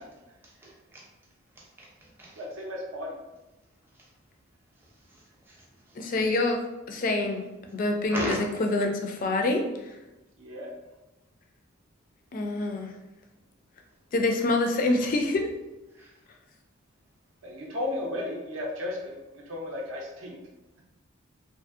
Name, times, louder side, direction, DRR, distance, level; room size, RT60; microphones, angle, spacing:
voice 1, 0.4-1.0 1.6-2.4 3.9-4.1 5.1-6.0 8.1-8.4 15.9-16.1, right 1 dB, 10° right, -4 dB, 0.5 m, -38 dB
voice 2, 2.4-3.1 10.4-10.7 17.4-20.4, left 1 dB, 65° right, -2 dB, 0.5 m, -34 dB
voice 3, 6.0-6.6 6.9-7.5 7.7-10.0 12.3-12.9 14.1-15.5, left 2 dB, 40° left, 4 dB, 0.3 m, -26 dB
2.6 x 2.6 x 2.4 m, 1.0 s
head